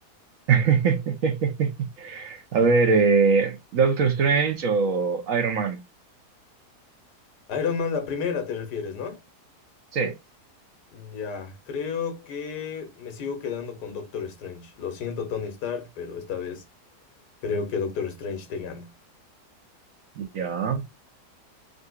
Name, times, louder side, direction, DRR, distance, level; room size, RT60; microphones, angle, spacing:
voice 1, 0.5-5.8 9.9-10.2 20.2-20.8, right 5 dB, 60° right, 1.0 m, -22 dB
voice 2, 7.5-9.2 10.9-16.6 17.4-18.9, left 6 dB, 80° left, 1.5 m, -31 dB
3.7 x 2.6 x 2.3 m
omnidirectional pair, 1.7 m